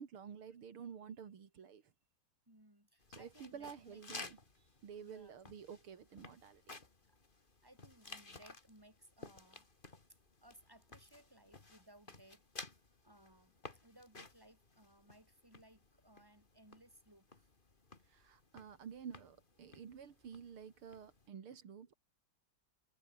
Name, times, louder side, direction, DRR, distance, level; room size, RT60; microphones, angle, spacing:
voice 1, 0.0-1.8 3.2-4.4 4.8-6.8 18.1-21.9, right 7 dB, 90° right, 2.9 m, -51 dB
voice 2, 2.5-4.0 5.0-5.4 7.0-7.2 7.6-9.7 10.4-17.5, right 1 dB, 10° right, 6.7 m, -63 dB
sound 1, 3.0-21.3, left 3 dB, 25° left, 2.3 m, -56 dB
omnidirectional pair, 2.3 m